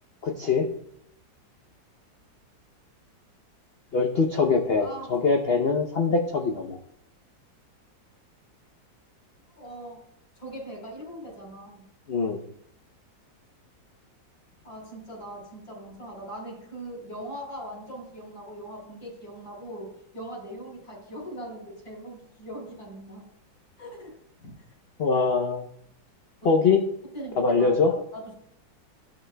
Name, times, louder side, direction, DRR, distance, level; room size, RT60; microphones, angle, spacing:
voice 1, 0.2-0.7 3.9-6.8 12.1-12.4 25.0-25.7 26.4-26.8 27.4-28.0, left 4 dB, 65° left, 3 dB, 0.5 m, -23 dB
voice 2, 4.8-5.1 9.5-10.0 10.4-11.8 14.6-23.2 23.8-24.7 26.4-26.5 27.1-27.7 28.1-28.3, right 1 dB, 90° left, -2 dB, 4.6 m, -40 dB
15.0 x 6.5 x 2.2 m, 0.72 s
omnidirectional pair, 2.0 m